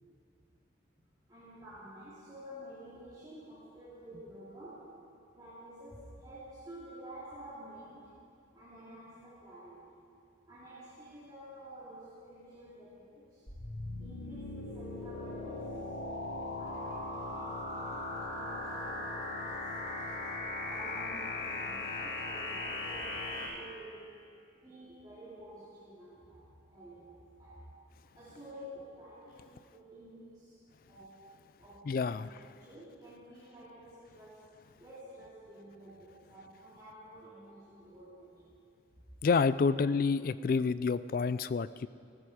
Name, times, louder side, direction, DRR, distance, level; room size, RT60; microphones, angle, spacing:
voice 1, 1.3-4.9 5.3-8.1 8.5-10.0 10.5-13.5 14.0-15.8 16.6-19.6 20.6-24.2 24.5-27.7 28.1-30.6 30.9-31.2 31.6-32.2 32.5-34.5 34.8-38.5, right 1 dB, 20° right, -11 dB, 2.9 m, -50 dB
sound 1, 13.5-23.5, left 2 dB, 90° left, 4.8 m, -38 dB
voice 2, 31.9-32.3 39.2-41.9, left 5 dB, 50° left, 16 dB, 0.3 m, -28 dB
16.5 x 13.5 x 5.0 m, 2.4 s
head